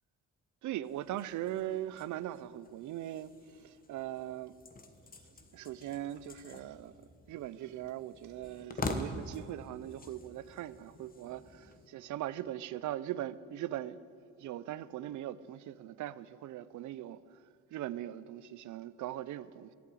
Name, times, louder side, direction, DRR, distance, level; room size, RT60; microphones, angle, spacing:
voice 1, 0.6-4.6 5.5-6.9 7.3-14.0 14.4-17.4 17.7-19.7, right 13 dB, 75° right, 0.6 m, -40 dB
sound 1, 0.8-11.9, left 3 dB, 30° left, 1.2 m, -46 dB
11.5 x 8.6 x 9.5 m
cardioid pair, 90°, 30 cm